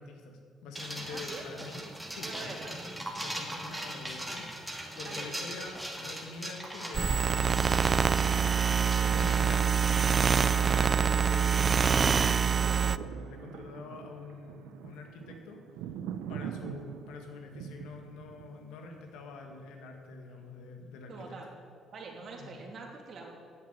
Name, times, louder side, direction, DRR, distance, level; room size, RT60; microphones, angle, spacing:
voice 1, 0.0-1.8 2.1-2.8 3.2-7.7 8.0-10.1 10.4-12.2 12.7-15.6 16.3-21.4 22.4-22.6, left 4 dB, 85° left, 3 dB, 2.0 m, -46 dB
sound 1, 0.7-10.3, right 1 dB, 5° right, 2.4 m, -40 dB
voice 2, 1.1-1.4 2.2-2.7 5.0-5.3 8.3-8.5 8.9-9.1 16.3-16.6 21.1-21.5 21.9-23.3, right 4 dB, 55° right, 0 dB, 2.8 m, -45 dB
sound 2, 6.9-13.0, right 6 dB, 40° right, 0.3 m, -25 dB
sound 3, 11.9-19.9 20.4-20.5, right 9 dB, 90° right, 0.6 m, -44 dB
10.0 x 7.8 x 9.4 m, 2.3 s
cardioid pair, 90°, 0 cm